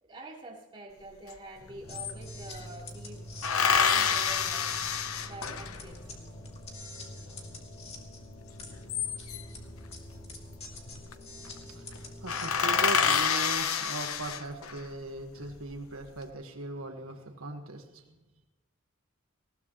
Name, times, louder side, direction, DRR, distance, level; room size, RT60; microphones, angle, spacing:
voice 1, 0.0-4.7 5.2-6.1 8.7-8.8, right 2 dB, 25° right, -3 dB, 3.6 m, -46 dB
sound 1, 1.3-1.4 1.6-2.7 3.4-5.9 8.6-9.6 10.8-11.1 11.4-11.6 11.9-12.0 12.3-14.8 15.4-16.1, left 6 dB, 85° left, 1.0 m, -28 dB
sound 2, 1.8-13.2, left 1 dB, 30° left, 2.5 m, -45 dB
voice 2, 11.4-18.0, right 2 dB, 80° right, 4 dB, 1.5 m, -39 dB
20.0 x 17.5 x 3.1 m, 1.0 s
head